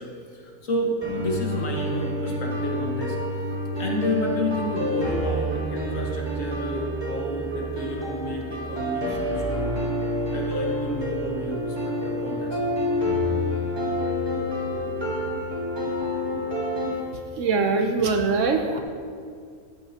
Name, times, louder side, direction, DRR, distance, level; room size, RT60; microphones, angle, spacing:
voice 1, 0.0-3.2 3.8-9.8 10.3-12.6, left 1 dB, 60° left, -1 dB, 1.7 m, -31 dB
sound 1, 1.0-17.0, equal, 20° right, 1.4 m, -28 dB
voice 2, 17.4-18.8, right 4 dB, 65° right, 5 dB, 0.9 m, -22 dB
13.0 x 8.4 x 2.8 m, 2.2 s
omnidirectional pair, 1.6 m